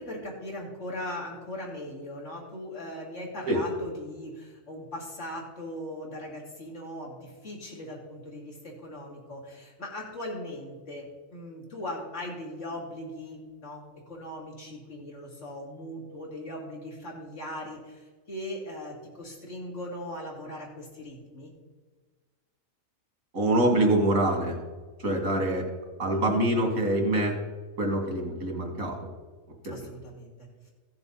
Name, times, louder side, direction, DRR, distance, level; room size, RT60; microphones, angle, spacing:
voice 1, 0.0-21.5 25.3-25.4 26.1-26.3 29.7-30.7, left 1 dB, 60° left, -2 dB, 2.7 m, -39 dB
voice 2, 23.3-24.6 25.0-25.7 26.0-27.4 27.8-29.0 29.6-29.9, right 1 dB, 90° right, 1 dB, 2.7 m, -25 dB
15.5 x 6.9 x 4.1 m, 1.4 s
omnidirectional pair, 1.4 m